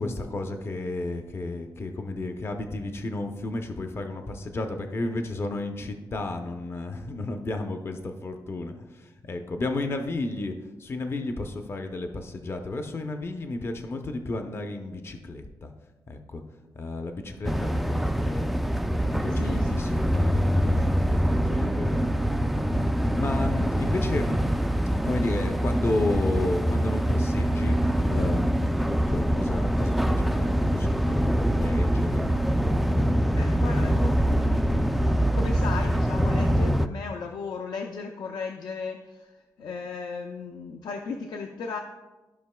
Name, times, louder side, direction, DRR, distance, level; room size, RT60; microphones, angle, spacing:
voice 1, 0.0-10.5 10.8-15.7 16.1-16.4 16.7-18.5 19.0-22.0 22.6-24.4 25.0-32.3 32.6-33.3, left 2 dB, 35° left, 5 dB, 0.6 m, -32 dB
sound 1, 17.4-36.9, equal, ahead, 0.3 m, -24 dB
voice 2, 19.4-19.8 33.3-39.3 39.6-41.8, left 4 dB, 75° left, 4 dB, 0.5 m, -36 dB
14.5 x 5.5 x 2.2 m, 1.1 s
wide cardioid pair, 135°, 7 cm